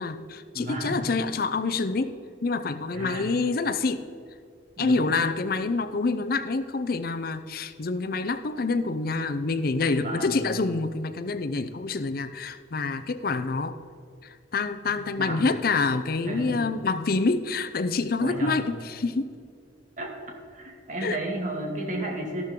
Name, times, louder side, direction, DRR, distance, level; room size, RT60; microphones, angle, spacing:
voice 1, 0.0-2.1 2.4-4.0 4.8-13.8 14.2-19.3 21.0-21.2, left 3 dB, 55° left, 10 dB, 0.5 m, -27 dB
voice 2, 0.5-1.0 2.9-3.3 4.8-5.1 10.0-10.4 15.2-15.4 16.2-16.6 18.2-18.6 20.0-20.1 20.5-22.4, right 1 dB, 45° right, 1 dB, 2.2 m, -33 dB
13.0 x 12.0 x 3.7 m, 2.4 s
head